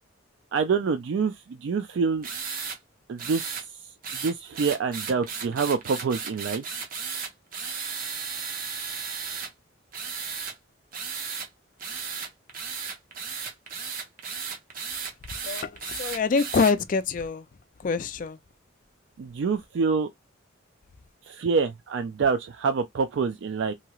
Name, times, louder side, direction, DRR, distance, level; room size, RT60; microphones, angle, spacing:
voice 1, 0.5-2.3 3.1-3.6 4.1-6.6 19.2-20.1 21.3-23.7, right 5 dB, 60° right, 0.3 m, -26 dB
sound 1, 2.2-2.8 3.2-3.6 4.0-9.5 9.9-10.5 10.9-11.5 11.8-16.7, right 5 dB, 45° right, 0.8 m, -34 dB
voice 2, 15.4-17.5 17.8-18.4, left 4 dB, 40° left, 0.3 m, -25 dB
3.0 x 2.8 x 2.3 m
head